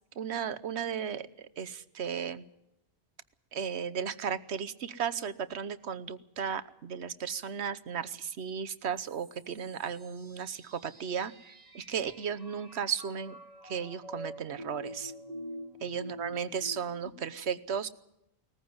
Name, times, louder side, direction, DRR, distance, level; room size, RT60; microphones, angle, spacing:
voice 1, 0.2-2.4 3.5-13.4 13.6-15.1 15.8-17.9, right 7 dB, 75° right, 13 dB, 1.2 m, -35 dB
sound 1, 9.0-17.1, equal, 35° right, 1.6 m, -46 dB
20.0 x 14.5 x 9.5 m, 0.84 s
omnidirectional pair, 1.1 m